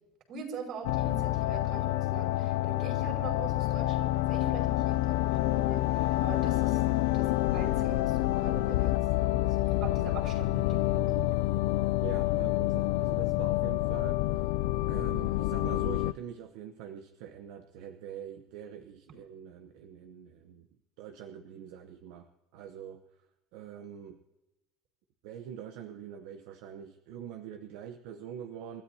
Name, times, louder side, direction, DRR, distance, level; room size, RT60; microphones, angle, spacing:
voice 1, 0.3-6.8 7.1-9.0 9.8-11.3, right 4 dB, 50° right, 3 dB, 5.3 m, -43 dB
sound 1, 0.8-16.1, left 16 dB, 85° left, 0.4 m, -28 dB
voice 2, 12.0-14.6 14.9-20.7 21.0-23.0 23.5-24.2 25.2-28.8, right 9 dB, 75° right, 7 dB, 0.9 m, -44 dB
28.5 x 13.5 x 2.8 m, 1.0 s
cardioid pair, 140°, 0 cm